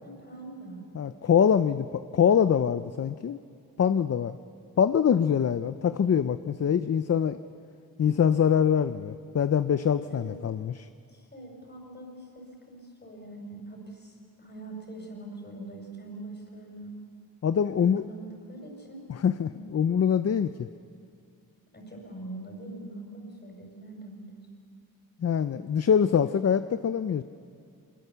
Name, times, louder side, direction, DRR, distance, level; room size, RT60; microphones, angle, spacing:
voice 1, 0.0-0.8 10.0-10.4 11.1-17.0 17.6-17.7 18.0-19.1 21.7-24.4, right 2 dB, 30° left, 1 dB, 5.0 m, -43 dB
voice 2, 0.9-3.4 3.8-4.4 4.8-7.4 8.0-10.9 17.4-18.0 19.1-20.5 25.2-27.2, left 8 dB, 45° left, 12 dB, 0.5 m, -24 dB
25.5 x 21.5 x 6.9 m, 2.3 s
wide cardioid pair, 165°, 37 cm